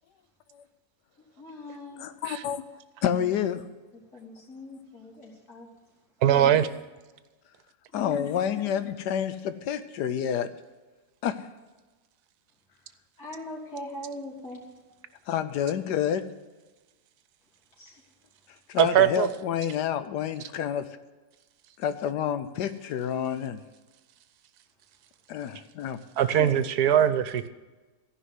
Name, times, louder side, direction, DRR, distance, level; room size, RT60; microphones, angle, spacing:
voice 1, 1.4-2.0 2.4-2.5 3.1-3.3 3.9-5.7 6.2-6.7 7.9-8.4 13.2-14.6 17.8-18.0 26.2-26.5 27.0-27.1, left 2 dB, 65° left, -3 dB, 3.5 m, -41 dB
voice 2, 2.0-2.6 3.0-3.6 7.9-10.5 11.2-11.5 15.3-16.2 18.7-20.9 21.8-23.6 25.3-26.0, left 9 dB, 90° left, 11 dB, 1.3 m, -29 dB
voice 3, 6.2-6.7 18.8-19.3 26.2-27.5, right 10 dB, 75° right, 13 dB, 1.2 m, -21 dB
14.5 x 5.5 x 9.5 m, 1.2 s
omnidirectional pair, 1.7 m